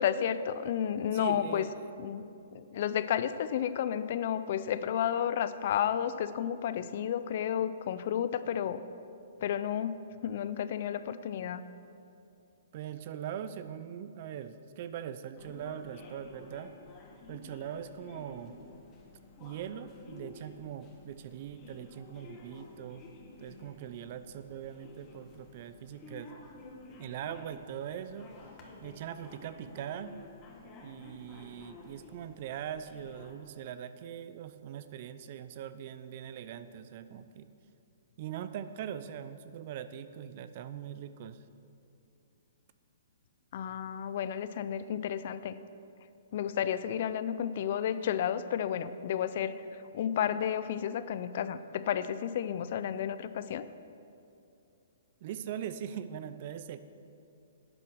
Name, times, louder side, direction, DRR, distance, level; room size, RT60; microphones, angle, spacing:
voice 1, 0.0-1.6 2.0-2.2 2.5-8.8 9.4-10.0 10.2-11.6 43.5-45.6 46.3-49.6 49.9-53.7, left 9 dB, 50° left, 13 dB, 0.5 m, -32 dB
voice 2, 1.1-1.7 12.7-16.7 17.3-18.6 19.4-23.0 23.4-26.3 27.0-28.3 28.8-30.2 30.8-37.5 38.2-41.4 55.2-56.8, right 9 dB, 45° right, 12 dB, 0.6 m, -41 dB
sound 1, 15.4-33.3, left 3 dB, 25° left, 1.6 m, -52 dB
10.5 x 8.8 x 6.3 m, 2.6 s
hypercardioid pair, 150°, 0 cm